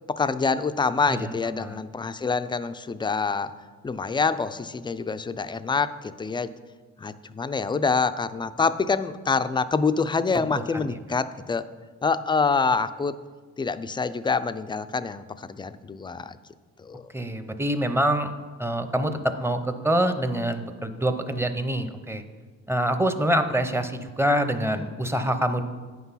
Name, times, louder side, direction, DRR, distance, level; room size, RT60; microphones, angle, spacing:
voice 1, 0.1-3.5 3.8-6.5 7.0-11.6 12.0-13.2 13.6-16.4 16.8-17.1, left 4 dB, 15° left, 13 dB, 0.4 m, -26 dB
voice 2, 1.1-1.8 10.7-10.8 17.1-18.3 18.6-22.2 22.7-25.6, right 1 dB, 10° right, 8 dB, 0.7 m, -25 dB
9.3 x 6.0 x 5.6 m, 1.4 s
cardioid pair, 90°, 30 cm